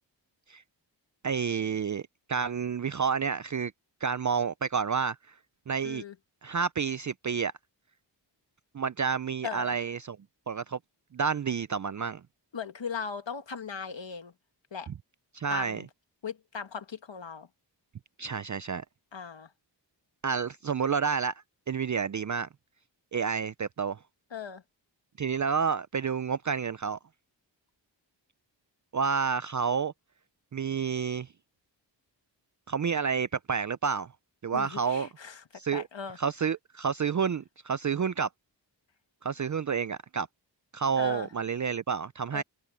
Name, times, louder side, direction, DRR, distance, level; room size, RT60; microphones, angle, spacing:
voice 1, 1.2-3.7 4.0-5.2 5.7-6.0 6.4-7.5 8.7-10.2 10.5-10.8 11.1-12.2 15.3-15.8 18.2-18.8 20.2-21.3 21.7-22.5 23.1-24.0 25.2-27.0 28.9-29.9 30.5-31.3 32.7-34.1 34.4-35.1 35.5-35.8 36.2-38.3 39.2-40.3 40.7-42.4, right 6 dB, 45° right, 0.4 m, -29 dB
voice 2, 5.8-6.2 9.4-9.8 12.5-14.3 14.7-14.9 15.5-15.9 16.2-17.5 19.1-19.5 24.3-24.6 34.5-35.4 35.7-36.2 41.0-41.3 42.3-42.4, left 6 dB, 75° left, 1.6 m, -38 dB
wide cardioid pair, 75°, 44 cm